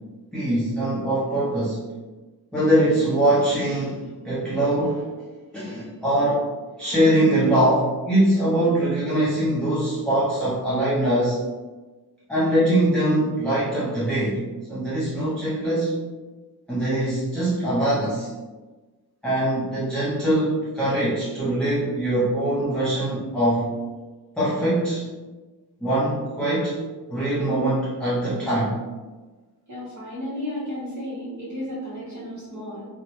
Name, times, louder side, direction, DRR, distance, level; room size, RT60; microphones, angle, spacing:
voice 1, 0.3-1.8 2.5-5.1 5.5-6.5 6.7-11.4 12.3-14.4 14.7-15.9 16.7-18.3 19.2-23.7 24.4-25.1 25.8-26.8 27.1-28.8, right 1 dB, ahead, -10 dB, 0.5 m, -22 dB
voice 2, 29.7-32.9, left 1 dB, 45° right, -9 dB, 1.1 m, -33 dB
2.6 x 2.1 x 2.9 m, 1.2 s
wide cardioid pair, 145°, 40 cm